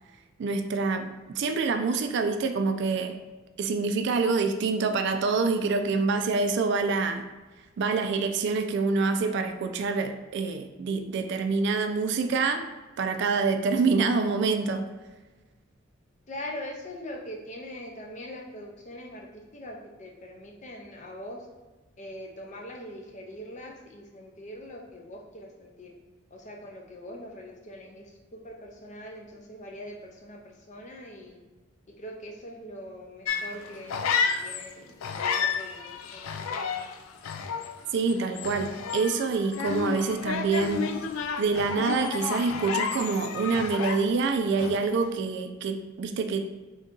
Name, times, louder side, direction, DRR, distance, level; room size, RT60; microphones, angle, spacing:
voice 1, 0.4-3.2 3.6-7.2 7.8-12.6 13.0-14.9 37.9-40.9 41.4-46.4, right 4 dB, 60° right, 7 dB, 0.3 m, -26 dB
voice 2, 16.3-21.5 22.0-25.9 26.3-31.4 32.0-36.9, left 1 dB, 35° left, 1 dB, 0.6 m, -42 dB
sound 1, 33.2-34.7 35.0-44.3 44.6-45.0, left 6 dB, 85° left, 0.3 m, -31 dB
3.8 x 2.7 x 3.6 m, 1.2 s
head